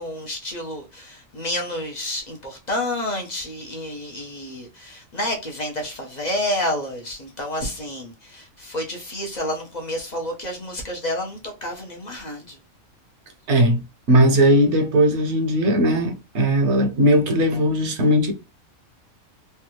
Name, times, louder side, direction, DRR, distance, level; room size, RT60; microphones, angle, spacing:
voice 1, 0.0-12.6, left 1 dB, 45° left, 0.6 m, -29 dB
voice 2, 13.5-13.8 14.1-18.3, equal, 60° right, 1.0 m, -18 dB
3.3 x 2.3 x 2.9 m
omnidirectional pair, 1.4 m